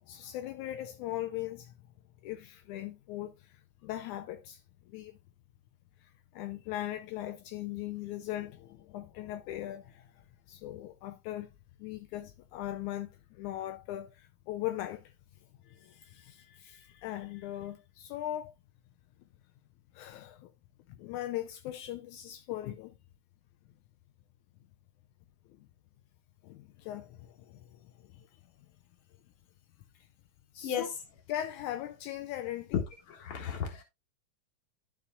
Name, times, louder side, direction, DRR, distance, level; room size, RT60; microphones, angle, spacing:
voice 1, 0.0-1.7 2.2-4.6 4.9-5.2 6.3-10.1 10.5-11.5 11.8-15.1 15.7-18.5 19.9-20.5 20.9-22.9 26.4-28.2 30.5-30.9 31.3-32.7, left 13 dB, 80° left, 2.0 m, -39 dB
voice 2, 33.1-33.8, left 8 dB, 50° left, 2.3 m, -33 dB
11.5 x 5.5 x 2.3 m
omnidirectional pair, 3.6 m